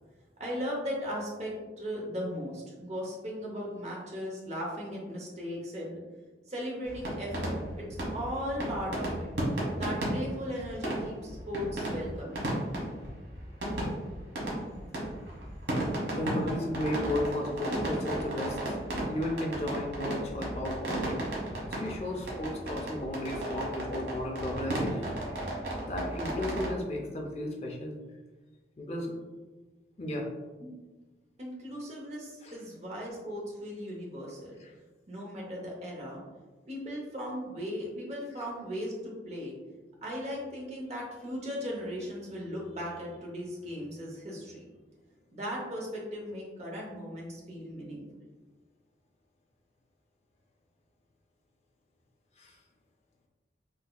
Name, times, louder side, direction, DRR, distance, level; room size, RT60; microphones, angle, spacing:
voice 1, 0.4-6.0 6.5-9.3 9.8-12.4 30.6-30.7 31.4-34.6 35.1-36.2 36.7-39.5 40.0-44.7 45.3-48.0, equal, 35° right, -3 dB, 0.7 m, -37 dB
sound 1, 6.9-26.7, right 1 dB, 75° right, 1.1 m, -34 dB
voice 2, 16.1-18.8 19.1-21.2 21.8-25.1 25.9-28.0 28.8-29.1 30.0-30.3 32.4-32.5 34.6-34.7 52.4-52.6, left 1 dB, 35° left, 1 dB, 0.5 m, -34 dB
3.9 x 2.8 x 2.2 m, 1.2 s
head